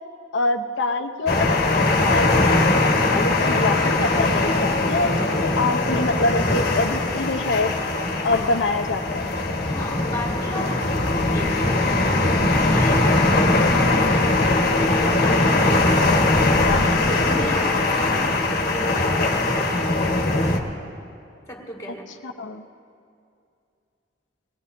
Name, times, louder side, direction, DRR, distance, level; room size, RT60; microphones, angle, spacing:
voice 1, 0.3-7.7 8.2-9.3 13.5-13.7 16.6-16.9 22.2-22.7, left 3 dB, 75° left, 5 dB, 0.9 m, -25 dB
sound 1, 1.3-20.6, left 2 dB, 55° left, 1.4 m, -20 dB
voice 2, 9.7-20.5 21.5-22.1, equal, 15° left, -2 dB, 2.0 m, -35 dB
21.0 x 19.0 x 2.7 m, 2.5 s
head